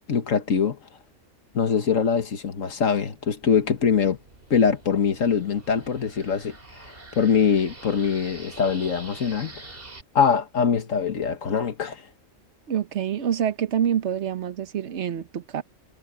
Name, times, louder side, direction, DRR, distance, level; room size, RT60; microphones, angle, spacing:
voice 1, 0.1-0.8 1.5-4.2 4.5-6.5 7.2-9.5 10.2-12.0, left 6 dB, 70° left, 1.8 m, -23 dB
sound 1, 3.1-10.0, right 2 dB, 40° right, 2.9 m, -45 dB
voice 2, 12.7-15.6, right 9 dB, 60° right, 1.2 m, -26 dB
omnidirectional pair, 1.4 m